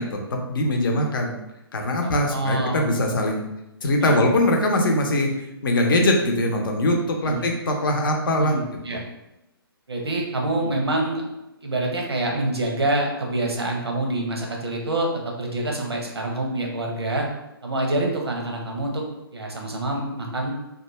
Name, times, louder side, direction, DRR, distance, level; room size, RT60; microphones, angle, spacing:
voice 1, 0.0-1.3 1.7-3.5 3.8-5.3 5.6-8.5, left 1 dB, 60° left, 2 dB, 0.6 m, -22 dB
voice 2, 2.0-2.9 4.0-4.2 7.2-7.5 8.4-9.0 9.9-11.2 11.6-15.1 15.4-17.3 17.6-19.0 19.3-20.5, right 2 dB, 90° right, 0 dB, 0.7 m, -26 dB
2.4 x 2.2 x 3.0 m, 0.92 s
figure-of-eight pair, 140°, 13 cm